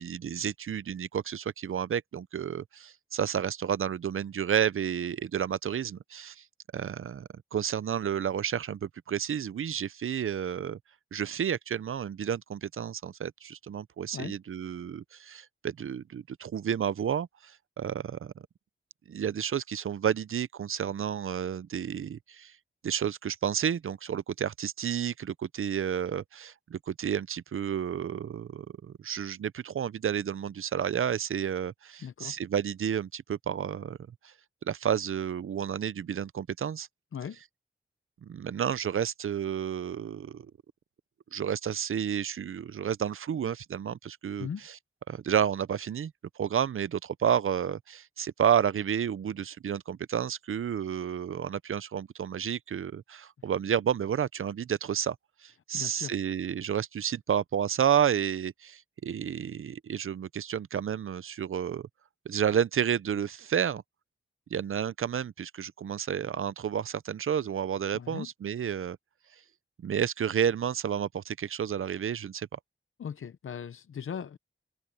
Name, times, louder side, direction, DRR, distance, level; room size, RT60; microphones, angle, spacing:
voice 1, 0.0-6.4 6.7-10.8 11.1-18.3 19.1-22.5 22.8-34.0 34.2-34.3 34.6-36.9 38.2-40.5 41.3-44.7 45.1-46.1 46.4-55.2 55.4-61.9 62.3-63.8 64.5-69.0 69.8-72.6, right 8 dB, 90° right, 0.5 m, -31 dB
voice 2, 32.0-32.4 37.1-37.4 44.4-44.7 55.7-56.1 67.9-68.3 73.0-74.4, left 7 dB, 90° left, 0.6 m, -38 dB
open air
wide cardioid pair, 95°, 21 cm